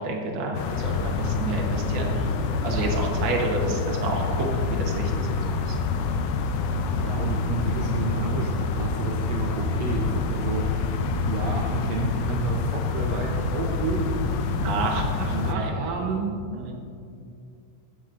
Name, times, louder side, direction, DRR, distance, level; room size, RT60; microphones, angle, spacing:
voice 1, 0.0-2.3 2.6-5.8 14.5-15.7 16.5-16.7, right 2 dB, 65° right, -1 dB, 1.2 m, -30 dB
sound 1, 0.5-15.5, left 4 dB, 80° left, 1.9 m, -27 dB
voice 2, 7.0-10.9 11.2-14.7 15.3-16.5, right 4 dB, 85° right, 0 dB, 1.4 m, -31 dB
13.0 x 7.4 x 2.5 m, 2.4 s
omnidirectional pair, 3.8 m